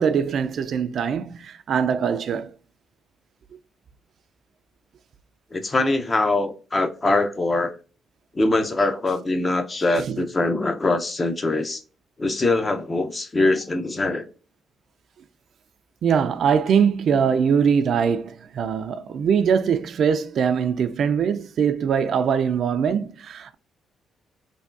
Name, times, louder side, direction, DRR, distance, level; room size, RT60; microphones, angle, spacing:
voice 1, 0.0-2.5 10.0-10.2 16.0-23.5, right 7 dB, 65° right, 0.3 m, -22 dB
voice 2, 5.5-7.7 8.3-11.8 12.2-14.3, left 2 dB, 30° left, 0.5 m, -23 dB
3.4 x 2.2 x 2.4 m
cardioid pair, 90°, 0 cm